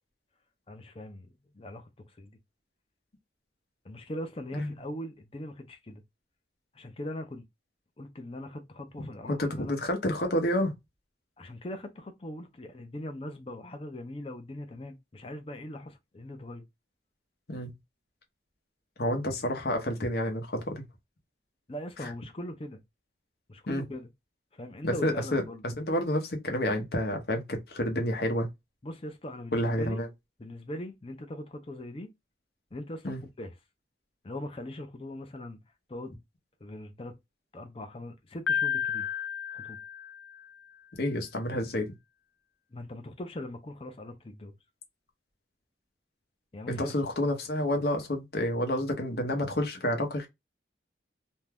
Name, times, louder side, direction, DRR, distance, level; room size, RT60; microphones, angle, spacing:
voice 1, 0.7-1.3 1.5-1.9 2.2-2.4 3.8-6.0 6.7-7.5 8.0-9.8 11.4-16.7 21.7-22.8 23.5-24.1 24.5-25.6 28.8-30.0 30.4-32.1 32.7-33.5 34.2-35.6 35.9-36.2 36.6-37.1 37.5-39.1 39.5-39.8 42.7-44.5 46.5-46.9, left 1 dB, 30° left, 0.5 m, -40 dB
voice 2, 9.0-10.7 17.5-17.7 19.0-20.8 22.0-22.1 23.7-23.8 24.8-28.5 29.5-30.1 33.0-33.2 40.9-41.9 46.7-50.3, left 1 dB, 55° left, 0.8 m, -29 dB
Piano, 38.5-40.6, left 8 dB, 80° left, 0.4 m, -32 dB
2.6 x 2.2 x 3.3 m
head